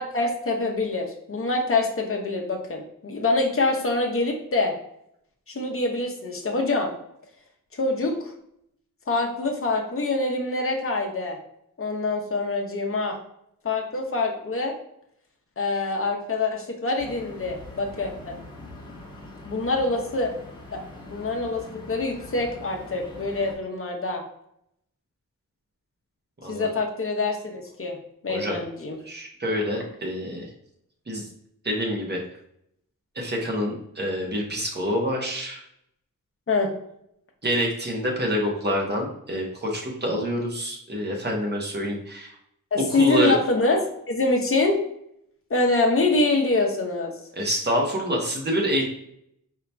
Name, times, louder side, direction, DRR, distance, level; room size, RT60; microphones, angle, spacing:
voice 1, 0.0-4.7 5.5-6.9 7.8-8.3 9.1-11.4 11.8-13.2 13.6-14.7 15.6-18.3 19.4-20.3 20.7-20.8 21.1-24.2 26.5-28.0 28.2-29.0 36.5-36.7 42.7-43.8 44.1-44.8 45.5-47.1, left 2 dB, 40° left, 2 dB, 0.8 m, -25 dB
sound 1, 17.0-23.5, left 2 dB, 15° left, 1.2 m, -43 dB
voice 2, 28.3-28.6 29.0-30.5 31.1-31.3 31.6-32.2 33.1-35.6 37.4-42.3 42.9-43.4 47.3-48.8, equal, 30° right, 0 dB, 1.1 m, -27 dB
4.8 x 2.9 x 3.3 m, 0.74 s
wide cardioid pair, 145°, 34 cm